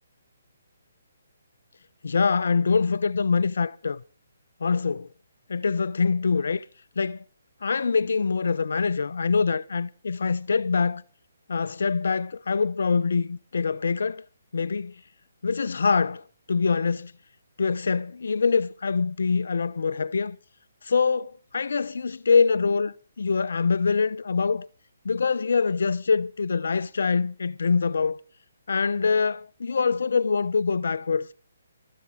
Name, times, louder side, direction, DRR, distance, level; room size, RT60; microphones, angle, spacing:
voice 1, 2.0-4.0 4.6-5.1 5.5-6.6 7.0-7.2 7.6-11.0 11.5-14.2 14.5-14.9 15.4-17.1 17.6-20.4 20.8-24.7 25.0-28.2 28.7-31.3, left 5 dB, 75° left, 0.5 m, -24 dB
13.5 x 7.5 x 7.4 m
hypercardioid pair, 150°, 0 cm